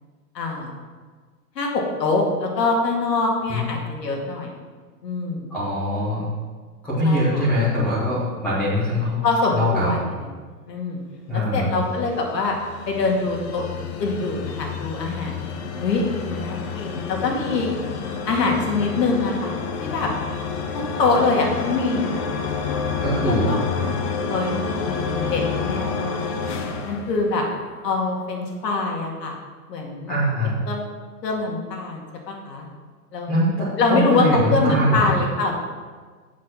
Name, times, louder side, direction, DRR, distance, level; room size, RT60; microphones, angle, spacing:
voice 1, 0.3-0.7 1.6-4.5 5.0-5.5 7.0-7.4 9.2-10.3 10.7-11.0 11.3-12.6 12.9-13.7 14.0-17.7 18.3-19.5 19.8-20.1 21.0-22.2 23.3-23.6 24.3-26.4 26.8-27.4 27.8-29.3 29.7-30.1 30.7-30.9 31.2-32.7 33.1-33.3 33.8-34.2 34.5-35.6, left 3 dB, 85° left, 0 dB, 2.2 m, -24 dB
voice 2, 5.5-6.3 6.8-9.2 9.5-10.0 11.3-11.8 23.0-23.5 30.1-30.5 33.3-35.1, equal, 5° left, -11 dB, 0.3 m, -22 dB
sound 1, 11.8-27.9, left 5 dB, 40° left, 0.9 m, -29 dB
7.4 x 5.9 x 5.9 m, 1.5 s
hypercardioid pair, 140°, 48 cm